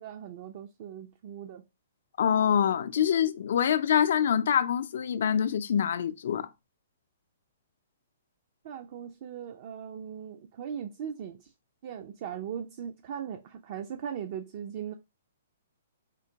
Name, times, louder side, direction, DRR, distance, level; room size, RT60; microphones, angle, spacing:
voice 1, 0.0-1.6 8.6-11.5 11.8-14.9, right 8 dB, 50° right, 0.5 m, -39 dB
voice 2, 2.2-6.5, left 8 dB, 60° left, 0.5 m, -25 dB
4.3 x 3.7 x 2.8 m
figure-of-eight pair, 120°, 0 cm